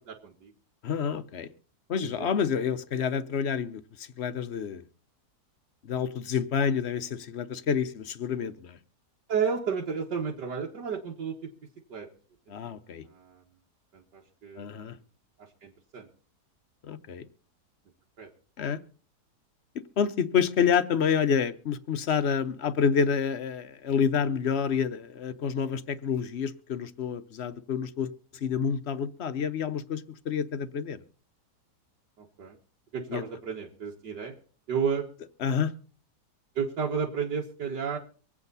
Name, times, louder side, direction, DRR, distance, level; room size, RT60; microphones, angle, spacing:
voice 1, 0.1-0.5 2.0-2.3 9.3-11.5 11.9-12.1 12.7-12.8 13.1-13.4 13.9-14.7 15.4-16.1 18.2-18.3 32.2-32.6 32.9-34.4 34.7-35.1 36.6-38.0, right 6 dB, 90° right, 2.1 m, -32 dB
voice 2, 0.8-1.5 1.9-4.8 5.8-8.8 12.5-13.0 14.6-15.0 16.8-17.2 18.6-18.8 20.0-28.1 28.4-31.0 33.1-33.2 35.4-35.7, left 7 dB, 50° left, 0.9 m, -28 dB
24.5 x 8.5 x 4.1 m
omnidirectional pair, 1.8 m